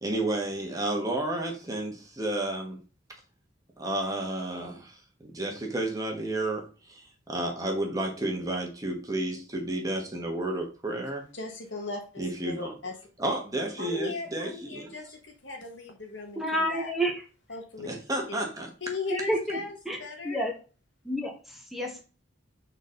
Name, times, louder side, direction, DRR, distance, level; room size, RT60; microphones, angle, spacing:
voice 1, 0.0-2.8 3.8-5.0 5.2-11.2 12.2-12.7 13.2-14.9 17.8-18.7, right 1 dB, 20° right, 1 dB, 1.3 m, -31 dB
voice 2, 11.3-12.9 13.8-16.9 17.5-17.9 18.3-18.4 18.8-19.7 20.0-20.4, left 3 dB, 70° left, 2 dB, 1.6 m, -37 dB
voice 3, 16.4-17.1 19.1-19.6 19.8-20.0 20.2-20.5 21.0-22.0, equal, ahead, 1 dB, 1.3 m, -29 dB
6.3 x 4.1 x 3.9 m, 0.35 s
head